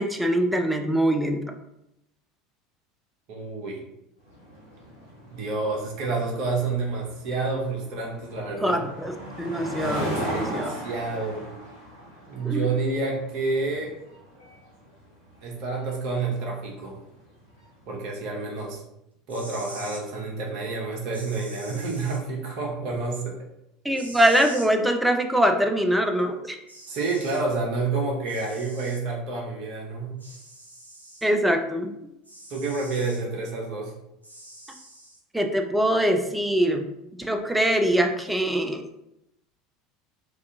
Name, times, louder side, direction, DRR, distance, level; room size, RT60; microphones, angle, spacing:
voice 1, 0.0-1.4 8.6-10.7 12.4-12.7 23.8-26.6 31.2-31.9 35.3-36.8 37.2-39.0, equal, 5° right, 4 dB, 0.4 m, -23 dB
voice 2, 3.3-3.8 5.3-8.8 10.0-11.4 12.3-13.9 15.4-17.0 17.9-18.8 19.3-23.4 26.9-30.2 32.5-33.9, right 3 dB, 45° right, -2 dB, 0.7 m, -29 dB
sound 1, 4.3-17.8, equal, 80° left, 1.4 m, -38 dB
sound 2, 19.2-20.0 21.1-22.2 24.0-24.7 26.2-26.3 26.7-27.4 28.3-29.0 30.2-31.3 32.2-33.2 34.2-35.2, right 1 dB, 85° right, 0.5 m, -44 dB
2.7 x 2.4 x 3.4 m, 0.84 s
figure-of-eight pair, 70°, 0 cm